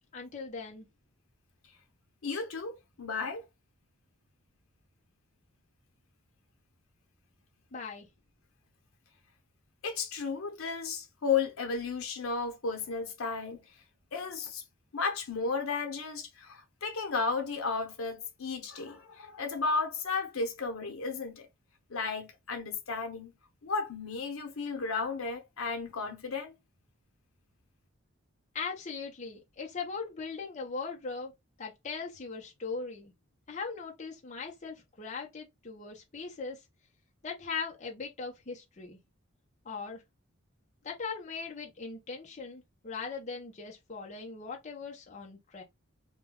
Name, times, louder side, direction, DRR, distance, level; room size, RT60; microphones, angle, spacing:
voice 1, 0.1-0.9 7.7-8.1 28.5-31.3 31.6-33.1 33.5-36.6 37.2-39.0 39.7-40.0 40.8-45.6, left 4 dB, 35° left, 0.5 m, -39 dB
voice 2, 2.2-3.4 9.8-13.6 14.1-14.6 14.9-21.5 21.9-23.4 23.6-26.5, left 4 dB, 75° left, 0.8 m, -34 dB
2.2 x 2.1 x 3.4 m
head